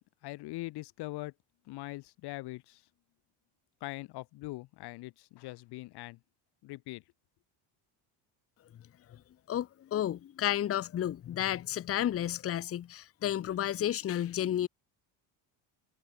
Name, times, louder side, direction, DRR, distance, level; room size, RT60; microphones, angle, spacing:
voice 1, 0.2-1.3 1.7-2.8 3.8-6.2 6.6-7.0, left 19 dB, 60° left, 1.4 m, -42 dB
voice 2, 9.5-14.7, left 11 dB, 30° left, 1.2 m, -32 dB
cardioid pair, 160°, 45 cm